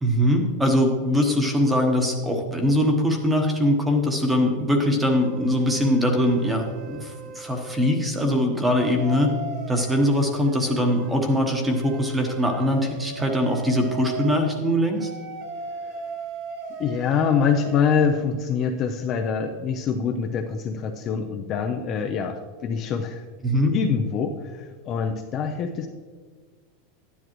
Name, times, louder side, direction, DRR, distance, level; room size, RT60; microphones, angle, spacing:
voice 1, 0.0-9.3 9.7-15.1 23.4-23.7, left 1 dB, 10° right, 3 dB, 1.1 m, -22 dB
sound 1, 5.1-8.0 8.6-14.4 15.0-18.0, right 4 dB, 45° right, 1.0 m, -38 dB
voice 2, 16.8-23.3 23.7-25.9, left 6 dB, 30° left, 4 dB, 0.5 m, -25 dB
12.0 x 10.0 x 3.1 m, 1.5 s
supercardioid pair, 165°, 0 cm